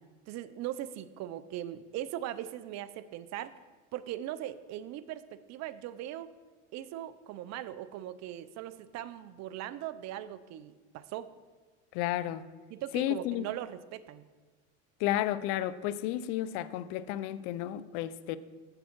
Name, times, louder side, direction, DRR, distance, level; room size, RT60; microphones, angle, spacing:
voice 1, 0.3-3.5 3.9-6.3 6.7-11.3 12.7-14.2, right 12 dB, 50° right, 0.5 m, -40 dB
voice 2, 11.9-12.5 12.9-13.5 15.0-18.4, left 13 dB, 70° left, 0.6 m, -32 dB
8.3 x 6.7 x 4.5 m
supercardioid pair, 105°, 35 cm